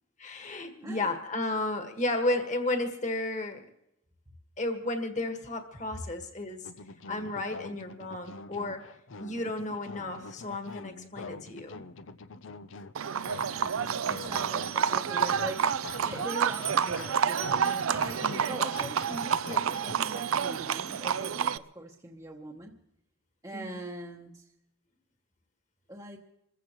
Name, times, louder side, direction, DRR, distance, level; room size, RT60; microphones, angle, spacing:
voice 1, 0.2-3.6 4.6-6.6 7.1-8.9 9.2-11.8 15.2-15.5 18.2-18.5 23.5-23.8, left 2 dB, 35° left, 5 dB, 1.7 m, -33 dB
sound 1, 6.6-19.9, left 4 dB, 70° left, 0.7 m, -44 dB
Livestock farm animals working animals, 12.9-21.6, right 7 dB, 85° right, 0.5 m, -29 dB
voice 2, 14.1-22.8 23.4-24.5 25.9-26.2, right 1 dB, 15° right, -2 dB, 1.0 m, -42 dB
27.0 x 15.0 x 3.1 m, 0.81 s
head